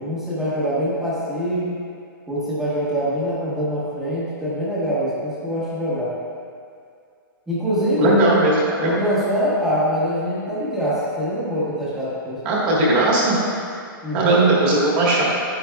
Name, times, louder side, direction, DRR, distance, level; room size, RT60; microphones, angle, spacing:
voice 1, 0.0-1.8 2.3-6.1 7.5-8.2 8.8-12.4 14.0-14.4, equal, 5° right, -9 dB, 1.0 m, -24 dB
voice 2, 8.0-8.9 12.4-13.4 14.1-15.2, right 2 dB, 25° right, -5 dB, 1.4 m, -17 dB
10.0 x 8.2 x 2.3 m, 2.3 s
hypercardioid pair, 180°, 12 cm